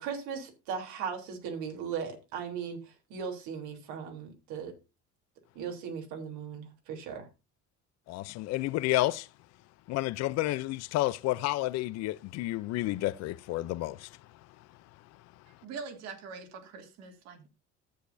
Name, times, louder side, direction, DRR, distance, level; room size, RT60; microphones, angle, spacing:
voice 1, 0.0-4.7 5.6-7.3, right 6 dB, 85° right, 3.4 m, -38 dB
voice 2, 8.1-9.3 9.9-14.2, left 17 dB, 60° left, 0.6 m, -30 dB
voice 3, 15.5-17.5, right 5 dB, 65° right, 2.8 m, -43 dB
14.0 x 8.3 x 2.6 m
cardioid pair, 155°, 29 cm